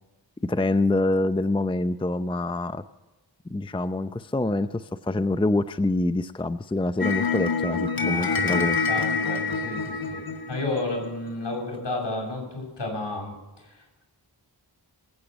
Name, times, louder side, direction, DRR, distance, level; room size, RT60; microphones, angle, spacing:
voice 1, 0.4-2.8 3.5-8.9, left 2 dB, 10° left, 11 dB, 0.6 m, -26 dB
sound 1, 7.0-11.3, left 4 dB, 50° left, 1.7 m, -27 dB
voice 2, 8.0-10.2 10.5-14.0, left 2 dB, 70° left, 0 dB, 6.9 m, -32 dB
25.0 x 8.6 x 5.1 m, 1.1 s
cardioid pair, 45°, 44 cm